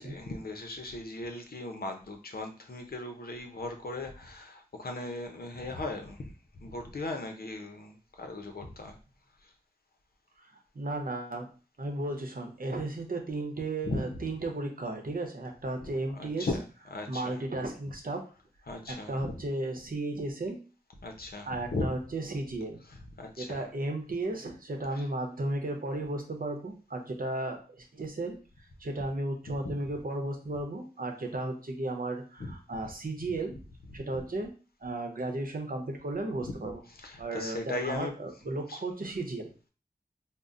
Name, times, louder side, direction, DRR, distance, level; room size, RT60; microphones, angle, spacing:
voice 1, 0.0-9.0 13.8-14.2 16.2-17.4 17.8-17.9 18.6-19.3 21.0-21.9 22.8-23.7 24.9-25.0 29.5-29.6 32.4-32.5 33.8-34.2 36.4-38.1 38.4-38.8, left 2 dB, 75° left, 4 dB, 0.6 m, -38 dB
voice 2, 10.4-11.5 11.8-16.5 17.1-18.2 18.9-20.6 21.4-22.8 23.4-28.4 28.8-33.6 33.9-34.5 34.8-36.8 37.2-39.5, right 2 dB, 65° right, 3 dB, 0.8 m, -34 dB
5.3 x 2.1 x 2.5 m, 0.36 s
wide cardioid pair, 50°, 16 cm